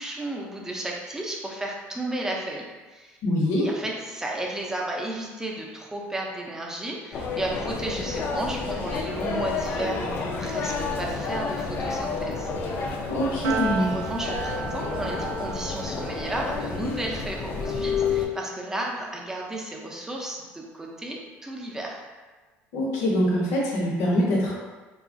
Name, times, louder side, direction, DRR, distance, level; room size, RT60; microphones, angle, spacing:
voice 1, 0.0-3.2 3.6-12.5 13.8-22.0, right 1 dB, 10° right, -1 dB, 0.5 m, -33 dB
voice 2, 3.2-3.7 12.8-13.9 22.7-24.5, left 1 dB, 75° left, -3 dB, 0.8 m, -24 dB
sound 1, 7.1-18.3, left 4 dB, 45° left, 0.4 m, -30 dB
Piano, 13.4-20.0, right 6 dB, 80° right, 0.3 m, -36 dB
2.8 x 2.3 x 2.6 m, 1.2 s
cardioid pair, 115°, 5 cm